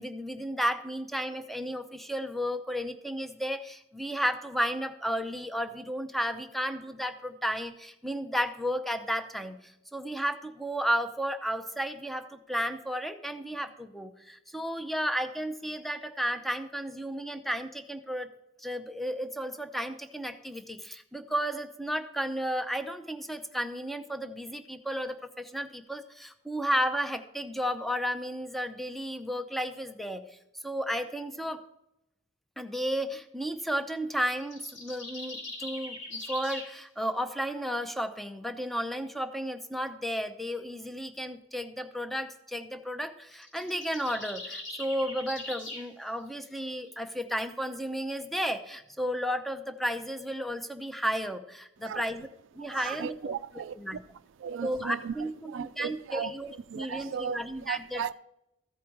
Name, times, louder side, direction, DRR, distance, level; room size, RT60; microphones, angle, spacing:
voice 1, 0.0-18.3 18.6-30.2 30.6-31.6 32.6-52.3 52.5-53.3 53.8-54.0 54.6-56.5 56.7-58.0, equal, ahead, 0.6 m, -33 dB
sound 1, 34.4-36.7 43.3-45.9, left 2 dB, 70° left, 3.3 m, -41 dB
voice 2, 52.6-54.0 54.4-55.1 55.4-58.1, right 7 dB, 70° right, 0.3 m, -36 dB
14.0 x 5.0 x 4.6 m
head